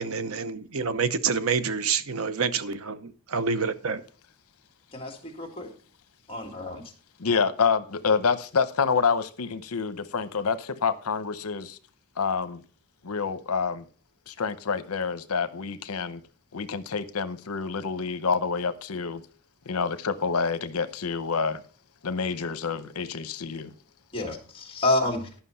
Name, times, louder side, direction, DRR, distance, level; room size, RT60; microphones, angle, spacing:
voice 1, 0.0-4.0, right 5 dB, 70° right, 0.8 m, -27 dB
voice 2, 4.9-5.7 6.3-6.8 24.1-25.2, left 2 dB, 25° left, 2.0 m, -28 dB
voice 3, 7.2-11.8 12.2-12.6 13.0-13.9 14.3-16.2 16.5-19.2 19.7-21.6 22.0-23.7, left 5 dB, 80° left, 0.8 m, -27 dB
11.5 x 5.9 x 5.6 m
head